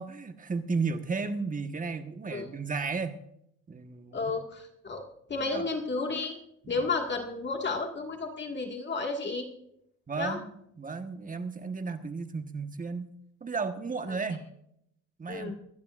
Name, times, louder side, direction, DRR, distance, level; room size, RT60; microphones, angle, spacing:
voice 1, 0.0-3.2 3.7-4.3 5.4-5.6 6.6-6.8 10.1-13.1 13.4-14.5 15.2-15.5, right 4 dB, 25° right, 8 dB, 1.3 m, -34 dB
voice 2, 4.1-5.0 5.3-6.4 6.7-9.5 10.2-10.4 15.3-15.5, left 3 dB, 35° left, 2 dB, 1.9 m, -32 dB
25.5 x 12.0 x 2.5 m, 0.75 s
cardioid pair, 90°, 30 cm